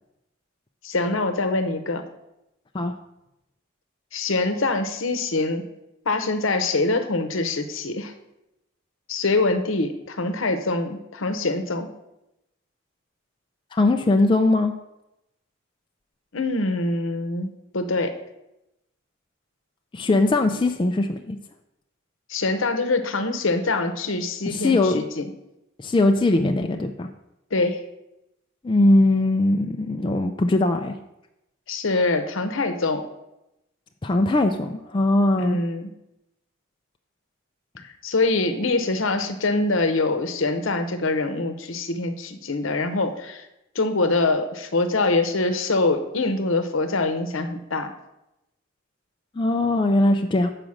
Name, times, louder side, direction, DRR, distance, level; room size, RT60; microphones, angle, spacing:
voice 1, 0.8-2.0 4.1-5.6 6.1-8.1 9.1-11.9 16.3-18.1 22.3-25.3 27.5-27.8 31.7-33.0 35.4-35.9 37.8-43.5 43.7-47.9, left 3 dB, 70° left, 8 dB, 0.9 m, -24 dB
voice 2, 13.7-14.7 19.9-21.4 24.5-25.0 25.8-27.1 28.6-30.9 34.0-35.6 49.4-50.5, left 2 dB, 25° left, 4 dB, 0.4 m, -20 dB
7.3 x 5.0 x 6.2 m, 0.89 s
head